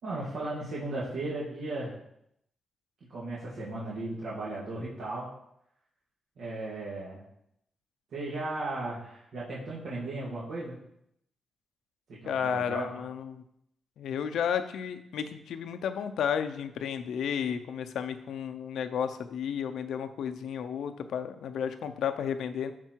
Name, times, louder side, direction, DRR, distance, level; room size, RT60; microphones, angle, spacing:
voice 1, 0.0-1.9 3.1-5.3 6.4-7.2 8.1-10.8 12.1-12.9, right 2 dB, 75° right, -7 dB, 2.4 m, -36 dB
voice 2, 12.3-13.4 14.0-22.7, left 8 dB, 90° left, 9 dB, 0.7 m, -32 dB
12.0 x 4.5 x 4.6 m, 0.76 s
cardioid pair, 110°, 0 cm